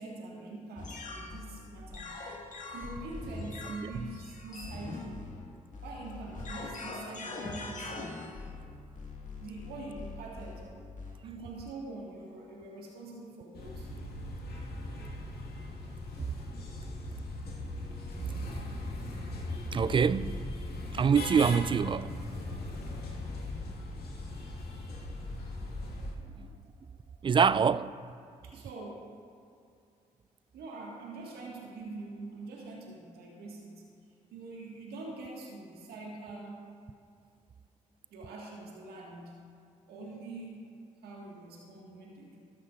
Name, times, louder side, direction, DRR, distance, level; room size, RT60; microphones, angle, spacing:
voice 1, 0.0-2.1 2.7-5.3 5.8-8.2 9.4-10.7 11.2-13.9 17.3-17.7 24.7-25.1 26.2-26.5 26.9-27.2 28.4-29.1 30.5-33.8 34.3-36.7 38.1-39.4 39.9-40.7 41.0-42.4, right 2 dB, 70° right, 1.7 m, -44 dB
sound 1, 0.8-11.3, left 3 dB, 50° left, 1.7 m, -42 dB
sound 2, 13.6-26.1, left 2 dB, 65° left, 1.7 m, -39 dB
voice 2, 19.7-20.4 20.9-22.1 26.4-26.5 27.2-27.9, right 6 dB, 30° right, 0.3 m, -25 dB
13.5 x 12.5 x 2.5 m
hypercardioid pair, 40°, 17 cm